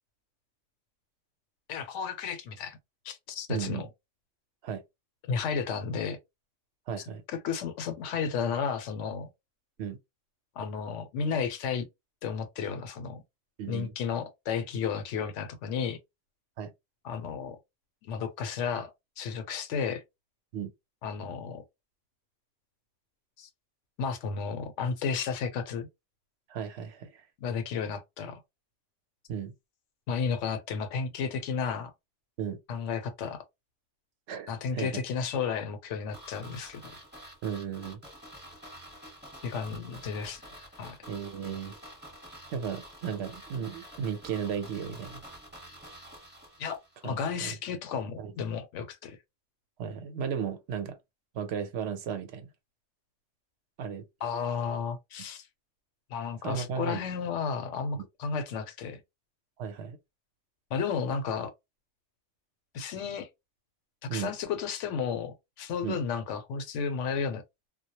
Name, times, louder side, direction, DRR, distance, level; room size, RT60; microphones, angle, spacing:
voice 1, 1.7-2.8 3.0-3.9 5.3-6.2 7.4-9.3 10.6-11.9 12.2-13.2 13.7-16.0 17.0-17.6 18.0-18.9 19.2-20.0 21.0-21.6 23.4-23.5 24.0-25.9 27.4-28.4 30.1-31.9 32.7-33.4 34.5-36.8 39.4-40.4 40.8-41.0 46.6-49.2 54.2-55.5 56.1-59.0 60.7-61.5 62.7-63.3 64.1-67.4, left 6 dB, 85° left, 0.9 m, -33 dB
voice 2, 3.5-3.8 4.6-4.8 6.9-7.2 9.8-10.0 13.6-13.9 16.6-16.7 20.5-20.7 26.5-27.2 29.3-29.5 32.4-32.6 34.3-34.9 37.4-38.0 41.1-41.7 42.5-45.2 47.0-47.6 48.2-48.3 49.8-51.0 51.3-52.5 53.8-54.1 56.4-57.0 59.6-60.0 64.1-64.3 65.8-66.0, right 7 dB, 70° right, 0.8 m, -35 dB
sound 1, 36.1-47.1 47.3-47.4, equal, 10° right, 0.9 m, -48 dB
2.2 x 2.0 x 2.7 m
omnidirectional pair, 1.2 m